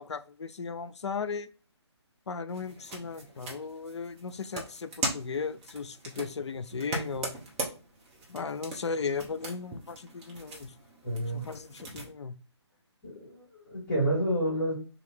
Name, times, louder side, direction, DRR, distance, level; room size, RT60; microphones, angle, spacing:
voice 1, 0.0-1.5 2.3-7.3 8.3-10.7 11.3-12.4, left 5 dB, 75° left, 0.5 m, -36 dB
sound 1, 2.5-12.1, right 2 dB, 20° right, 0.9 m, -40 dB
voice 2, 11.0-11.5 13.0-14.7, right 1 dB, 35° left, 1.9 m, -29 dB
3.2 x 2.7 x 4.1 m
figure-of-eight pair, 150°, 15 cm